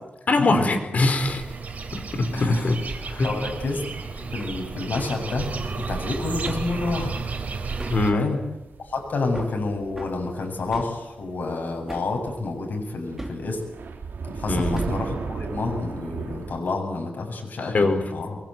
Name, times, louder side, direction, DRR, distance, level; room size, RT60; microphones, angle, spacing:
voice 1, 0.3-1.4 1.9-3.3 7.9-8.3 14.5-14.9 17.6-18.1, left 2 dB, 50° left, 7 dB, 4.5 m, -23 dB
sound 1, 1.2-8.1, right 4 dB, 50° right, 3.6 m, -32 dB
voice 2, 2.3-2.7 3.2-3.8 4.2-5.5 5.8-7.1 8.1-8.4 8.8-13.6 14.2-18.4, left 3 dB, 65° left, 3 dB, 7.5 m, -29 dB
Hammer, 4.4-4.6 5.0-5.2 6.4-6.7 7.8-8.1 9.3-9.6 10.0-10.2 10.7-11.0 11.9-12.2 13.2-13.5 14.8-15.1, right 1 dB, 10° right, 2.6 m, -38 dB
sound 2, 8.1-11.9 12.2-12.4 12.8-16.6, right 4 dB, 75° right, 2.6 m, -35 dB
24.0 x 23.5 x 9.2 m, 0.94 s
wide cardioid pair, 170°, 3 cm